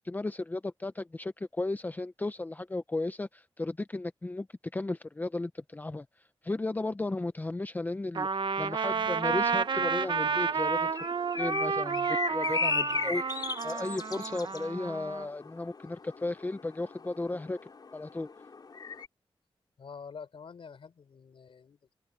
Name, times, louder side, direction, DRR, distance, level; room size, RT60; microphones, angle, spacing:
voice 1, 0.1-4.5 4.7-6.1 6.4-11.0 11.4-17.6 17.9-18.3, left 2 dB, 20° left, 0.5 m, -35 dB
Trumpet, 8.1-15.3, right 5 dB, 60° right, 0.8 m, -31 dB
sound 1, 9.1-19.1, left 4 dB, 50° left, 3.2 m, -37 dB
voice 2, 12.8-13.2 19.8-21.9, left 5 dB, 75° left, 4.9 m, -47 dB
wide cardioid pair, 155°, 9 cm